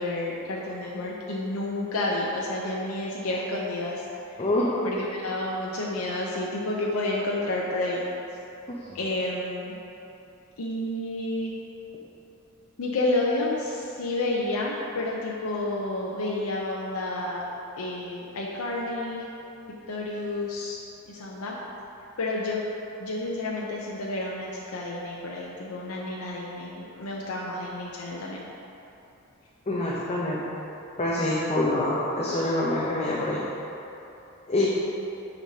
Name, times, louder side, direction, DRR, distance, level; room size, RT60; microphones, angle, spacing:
voice 1, 0.0-4.0 4.8-8.0 8.9-9.7 10.6-11.5 12.8-17.4 17.8-19.2 19.9-20.8 21.1-21.5 22.2-22.6 23.0-28.4, left 2 dB, 75° left, -3 dB, 0.7 m, -30 dB
voice 2, 4.4-4.7 8.7-9.0 29.7-30.5 31.0-33.5 34.5-34.7, left 1 dB, 30° left, -6 dB, 0.7 m, -26 dB
9.1 x 5.3 x 2.8 m, 3.0 s
head